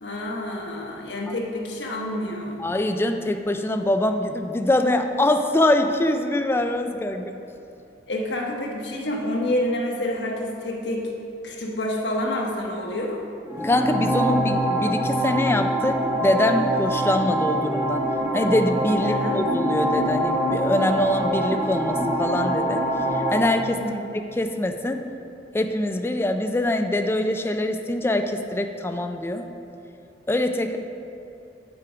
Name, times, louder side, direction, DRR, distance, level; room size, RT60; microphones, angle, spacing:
voice 1, 0.0-2.6 8.1-11.1 11.4-13.2 19.0-19.4 23.7-24.0, left 1 dB, 75° left, -1 dB, 1.1 m, -28 dB
voice 2, 2.6-7.3 13.6-18.0 18.3-22.8 23.3-23.8 24.4-25.0 25.5-29.5 30.3-30.8, left 1 dB, 15° left, 6 dB, 0.3 m, -23 dB
sound 1, 13.5-23.5, right 1 dB, 15° right, 0.9 m, -24 dB
8.5 x 4.8 x 4.9 m, 2.8 s
head